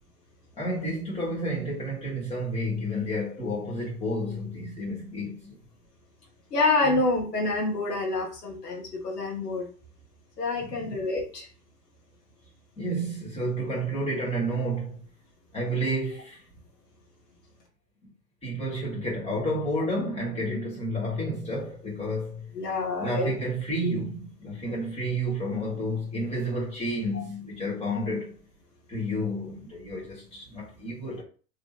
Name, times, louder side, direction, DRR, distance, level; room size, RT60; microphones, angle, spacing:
voice 1, 0.6-5.6 6.8-7.0 10.6-11.0 12.8-15.0 15.5-16.4 18.4-22.5 23.0-28.3 28.9-31.2, equal, 15° left, 2.2 m, -30 dB
voice 2, 6.5-9.6 10.4-11.5 22.5-23.3 23.8-24.0 24.6-24.7 27.1-27.2, left 3 dB, 85° left, 1.6 m, -27 dB
4.0 x 3.1 x 4.2 m
hypercardioid pair, 105°, 47 cm